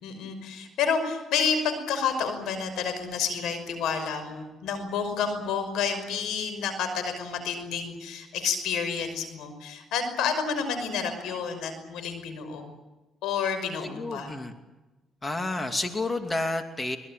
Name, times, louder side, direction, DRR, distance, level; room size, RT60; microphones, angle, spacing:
voice 1, 0.0-12.7 13.2-14.3, left 6 dB, 90° left, 9 dB, 5.8 m, -29 dB
voice 2, 13.8-14.5 15.2-17.0, left 2 dB, 20° left, 6 dB, 2.7 m, -30 dB
24.0 x 21.5 x 9.1 m, 1.1 s
cardioid pair, 90°, 0 cm